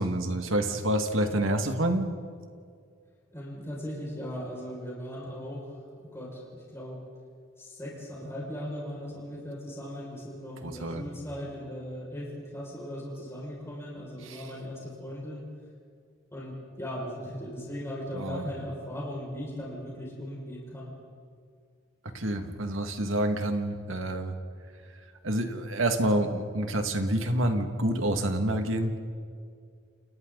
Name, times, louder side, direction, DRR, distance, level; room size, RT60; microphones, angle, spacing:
voice 1, 0.0-2.1 10.6-11.0 14.3-14.4 18.1-18.4 22.1-24.3 25.2-29.0, right 1 dB, 85° right, 5 dB, 2.2 m, -28 dB
voice 2, 3.3-5.8 6.1-7.0 7.6-15.4 16.3-20.9, equal, 15° left, -4 dB, 6.1 m, -38 dB
30.0 x 28.5 x 4.1 m, 2.1 s
head